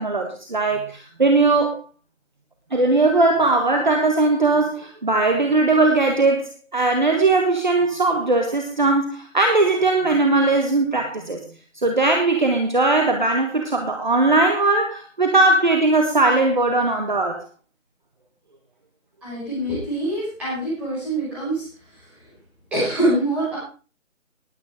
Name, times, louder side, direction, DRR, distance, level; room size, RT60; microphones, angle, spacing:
voice 1, 0.0-1.7 2.7-11.4 11.7-17.4, right 3 dB, 35° right, 4 dB, 1.5 m, -19 dB
voice 2, 19.2-21.7 22.7-23.6, right 1 dB, 5° right, -11 dB, 5.3 m, -24 dB
19.5 x 9.3 x 3.6 m, 0.37 s
figure-of-eight pair, 175°, 41 cm